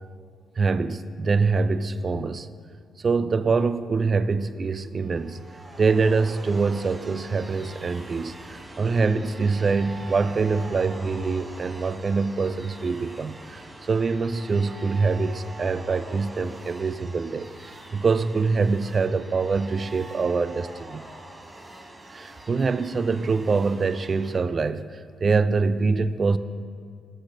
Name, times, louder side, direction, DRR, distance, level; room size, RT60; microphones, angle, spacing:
voice 1, 0.6-2.5 3.0-5.4 5.8-21.0 22.1-26.4, right 4 dB, 40° right, 14 dB, 0.3 m, -24 dB
sound 1, 5.0-24.4, right 2 dB, 15° right, 0.8 m, -43 dB
11.5 x 4.1 x 6.1 m, 2.1 s
cardioid pair, 90°, 0 cm